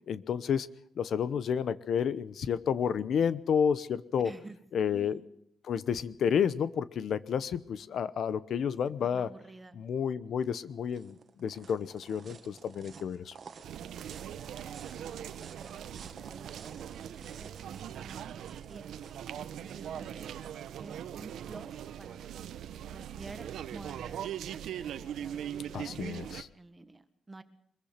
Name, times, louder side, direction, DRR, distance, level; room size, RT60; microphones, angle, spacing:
voice 1, 0.1-0.7 1.0-4.3 4.7-5.2 5.6-9.3 9.7-13.3 25.7-26.5, left 7 dB, 60° left, 15 dB, 0.9 m, -30 dB
voice 2, 4.2-4.6 4.8-5.2 9.1-9.7 14.5-18.9 19.4-20.3 20.8-22.3 22.9-24.6 24.9-25.5 25.8-27.4, right 3 dB, 15° right, 11 dB, 1.6 m, -51 dB
sound 1, 10.4-21.3, right 6 dB, 45° right, 1.8 m, -53 dB
sound 2, 13.6-26.4, right 10 dB, 90° right, 1.2 m, -41 dB
24.0 x 22.0 x 5.9 m, 0.67 s
wide cardioid pair, 175°, 0 cm